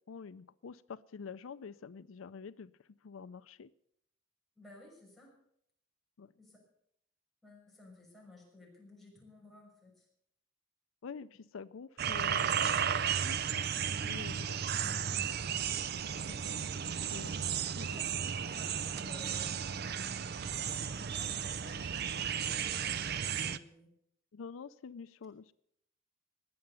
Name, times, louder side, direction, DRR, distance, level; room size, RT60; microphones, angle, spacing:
voice 1, 0.1-2.7 3.0-3.7 6.2-6.3 11.0-15.2 17.1-17.4 17.7-18.0 24.3-25.5, left 5 dB, 90° left, 16 dB, 0.5 m, -48 dB
voice 2, 4.6-5.3 6.4-6.6 7.4-10.1 16.2-16.5 16.9-17.5 17.9-18.1 18.3-19.5 20.4-23.9, left 2 dB, ahead, -3 dB, 5.9 m, -56 dB
sound 1, 12.0-23.6, right 8 dB, 55° right, 0.6 m, -34 dB
20.0 x 7.8 x 6.9 m, 0.71 s
head